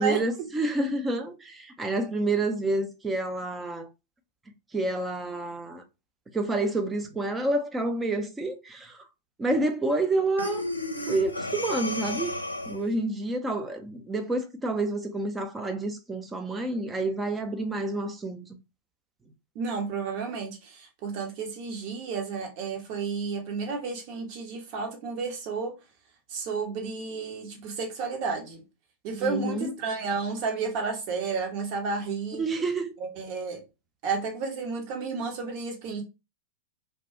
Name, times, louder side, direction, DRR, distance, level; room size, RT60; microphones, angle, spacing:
voice 1, 0.0-3.9 4.7-5.8 6.3-9.1 9.4-10.7 11.1-12.3 12.7-18.5 29.2-29.7 32.3-33.0, right 2 dB, 15° right, 0.5 m, -28 dB
Breathing, 10.4-12.9, left 1 dB, 90° left, 0.5 m, -32 dB
voice 2, 19.5-25.7 26.3-28.6 29.0-32.4 33.0-33.6 34.0-36.0, right 5 dB, 45° right, 0.8 m, -32 dB
2.2 x 2.2 x 2.8 m
figure-of-eight pair, 95°, 0 cm